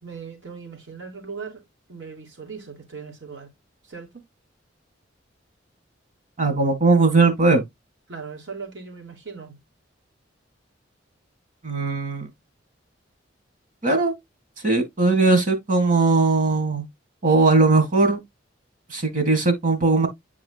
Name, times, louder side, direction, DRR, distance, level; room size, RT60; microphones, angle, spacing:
voice 1, 0.0-1.6 1.9-3.5 3.8-4.3 8.1-9.6, right 5 dB, 75° right, 3.1 m, -38 dB
voice 2, 6.4-7.6 11.6-12.3 13.8-14.1 14.6-16.9 17.2-18.2 18.9-20.1, right 3 dB, 45° right, 2.1 m, -19 dB
9.2 x 4.9 x 2.4 m
head